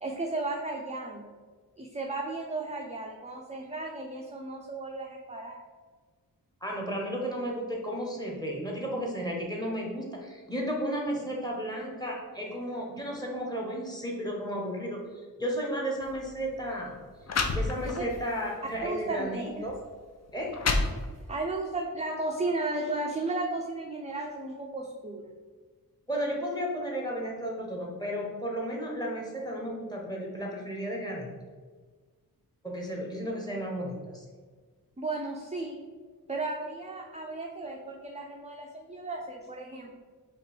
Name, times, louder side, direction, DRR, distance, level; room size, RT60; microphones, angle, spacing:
voice 1, 0.0-1.3 1.8-5.6 17.8-18.0 18.8-19.7 21.3-25.3 35.0-35.8 36.3-39.9, right 2 dB, 20° right, 1 dB, 0.4 m, -34 dB
voice 2, 6.6-15.0 15.4-16.9 17.5-19.8 20.3-20.6 26.1-31.3 32.6-34.2, equal, 10° left, -2 dB, 1.0 m, -33 dB
sound 1, 16.0-16.2 16.9-17.0 17.3-18.2 18.7-18.9 19.7-19.8 20.3-21.4, left 3 dB, 45° left, 0.5 m, -29 dB
5.1 x 2.4 x 4.3 m, 1.4 s
wide cardioid pair, 95°, 37 cm